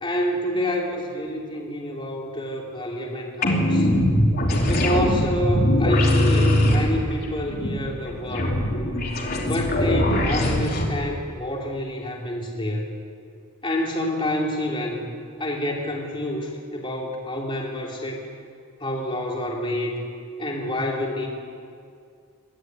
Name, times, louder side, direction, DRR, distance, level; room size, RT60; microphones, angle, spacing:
voice 1, 0.0-3.9 4.6-8.6 9.4-12.9 13.6-15.1 15.4-18.2 18.8-20.0 20.4-21.3, left 1 dB, 25° left, -1 dB, 3.1 m, -28 dB
sound 1, 3.4-10.9, left 1 dB, 45° left, 3.2 m, -21 dB
22.5 x 14.0 x 9.4 m, 2.3 s
head